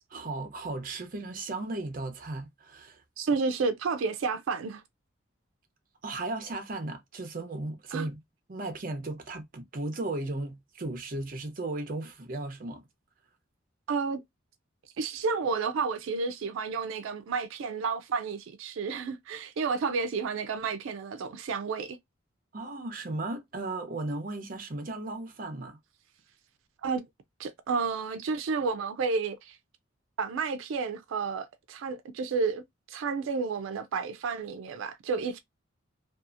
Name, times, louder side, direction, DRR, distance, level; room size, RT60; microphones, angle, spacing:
voice 1, 0.0-3.0 6.0-8.2 8.5-12.8 22.5-25.8, right 2 dB, 45° right, 0.6 m, -36 dB
voice 2, 3.2-4.8 7.9-8.1 13.9-14.2 15.0-22.0 26.8-27.0 27.4-29.6 30.2-32.6 32.9-35.4, right 4 dB, 90° right, 0.4 m, -31 dB
2.7 x 2.3 x 2.4 m
head